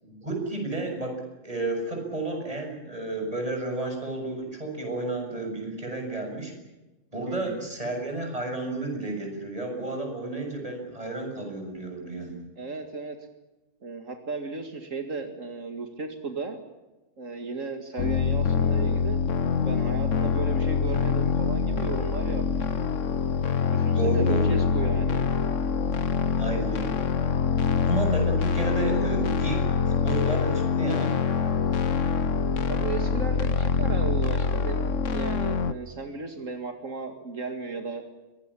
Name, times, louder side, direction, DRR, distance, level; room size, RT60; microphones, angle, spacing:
voice 1, 0.0-6.5 7.1-12.4 24.0-24.6 26.4-26.9 27.8-31.2, right 2 dB, 25° right, 2 dB, 7.1 m, -31 dB
voice 2, 7.3-7.7 12.6-13.2 13.8-16.6 17.2-19.2 19.7-22.5 22.8-22.9 23.7-25.3 32.7-38.1, right 4 dB, 80° right, 5 dB, 2.5 m, -35 dB
sound 1, 18.0-35.7, left 6 dB, 75° left, 1.4 m, -25 dB
23.5 x 19.5 x 9.9 m, 1.1 s
omnidirectional pair, 1.3 m